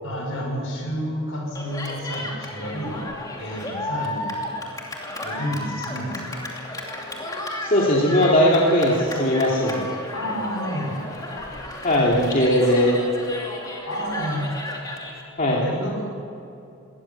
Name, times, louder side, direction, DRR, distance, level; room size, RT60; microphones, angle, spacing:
voice 1, 0.0-4.4 5.2-6.4 10.1-11.0 13.8-14.5 15.6-16.0, equal, 65° left, 0 dB, 6.4 m, -30 dB
Cheering, 1.5-15.2, left 1 dB, 15° left, 2.7 m, -33 dB
voice 2, 7.6-9.9 11.8-13.0 15.4-15.6, left 1 dB, 35° left, -4 dB, 2.7 m, -19 dB
22.0 x 18.0 x 7.3 m, 2.7 s
head